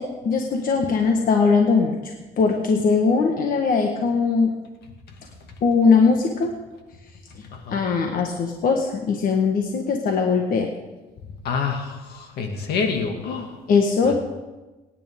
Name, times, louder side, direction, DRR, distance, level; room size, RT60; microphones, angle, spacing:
voice 1, 0.0-1.9 2.4-4.5 5.6-6.5 7.7-10.7 13.7-14.1, left 5 dB, 55° left, 2 dB, 1.5 m, -20 dB
voice 2, 7.5-7.8 11.4-13.5, left 5 dB, 75° left, 3 dB, 2.3 m, -27 dB
24.0 x 10.0 x 3.7 m, 1.2 s
cardioid pair, 110°, 17 cm